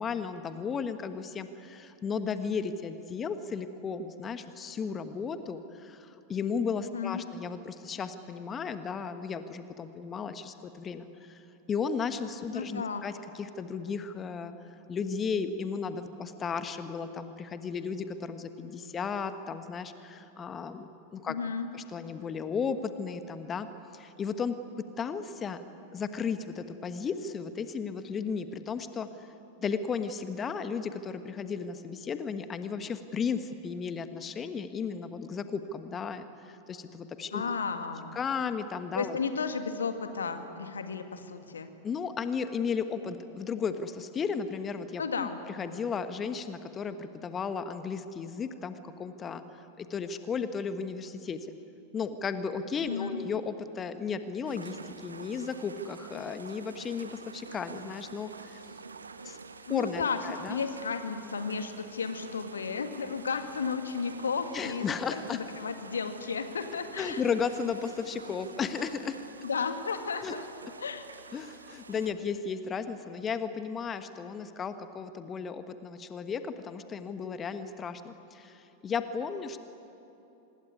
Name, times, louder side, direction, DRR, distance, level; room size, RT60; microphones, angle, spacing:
voice 1, 0.0-11.4 11.7-14.5 14.9-21.4 21.7-23.7 23.9-24.6 25.0-25.6 25.9-29.3 29.6-37.5 38.1-39.2 41.8-51.5 51.9-58.6 59.2-59.4 59.7-60.6 64.5-65.4 67.0-69.2 70.2-70.4 71.3-79.6, left 6 dB, 25° left, 10 dB, 1.3 m, -34 dB
voice 2, 6.8-7.3 12.5-13.0 21.3-21.7 37.3-38.2 39.0-41.7 45.0-45.4 52.8-53.2 59.7-60.2 60.5-67.2 69.4-70.5 70.8-71.0, left 5 dB, 70° left, 8 dB, 2.0 m, -33 dB
sound 1, 54.5-72.1, right 4 dB, 75° right, 1.1 m, -47 dB
26.0 x 20.5 x 9.7 m, 3.0 s
figure-of-eight pair, 90°, 0 cm